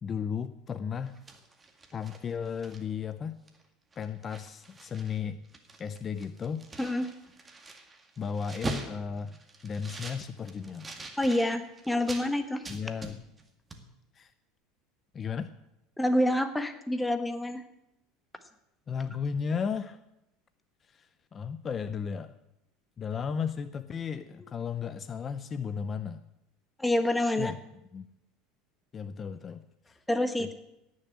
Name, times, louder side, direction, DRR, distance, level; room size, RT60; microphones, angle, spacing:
voice 1, 0.0-1.1 1.9-3.4 4.0-5.4 5.8-6.6 8.2-11.0 12.7-13.2 14.1-14.3 15.1-15.5 18.9-20.0 20.8-22.3 23.0-26.2 27.4-27.6 27.9-28.1 28.9-30.0 30.4-30.5, left 6 dB, 30° left, 12 dB, 0.6 m, -35 dB
sound 1, 1.0-3.1 3.5-3.6 3.9-5.2 5.4-12.3 12.6-13.5 13.7-13.8, right 2 dB, 15° right, 2.1 m, -43 dB
voice 2, 11.2-12.6 16.0-17.6 26.8-27.5 30.1-30.5, left 1 dB, 5° left, 8 dB, 1.4 m, -27 dB
17.5 x 6.8 x 8.6 m, 0.86 s
supercardioid pair, 125°, 0 cm